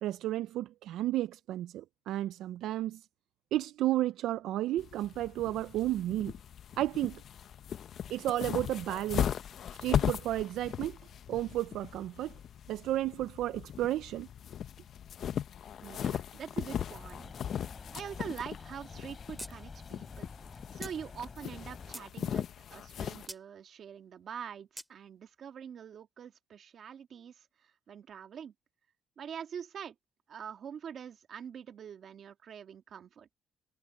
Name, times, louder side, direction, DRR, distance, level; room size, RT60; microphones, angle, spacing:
voice 1, 0.0-3.1 3.5-6.3 6.8-7.2 8.1-9.4 9.8-11.0 11.3-12.4 12.7-14.3, right 14 dB, 85° right, 0.4 m, -32 dB
sound 1, 4.8-23.3, left 9 dB, 65° left, 0.8 m, -38 dB
voice 2, 15.8-17.3 17.9-28.5 29.2-30.0 30.3-33.4, right 8 dB, 60° right, 1.7 m, -45 dB
sound 2, 16.9-22.0, left 4 dB, 35° left, 6.9 m, -49 dB
sound 3, 19.4-19.5 19.8-19.9 20.8-21.0 21.6-22.1 23.3-23.4 24.8-24.9, equal, 5° right, 2.4 m, -44 dB
cardioid pair, 90°, 0 cm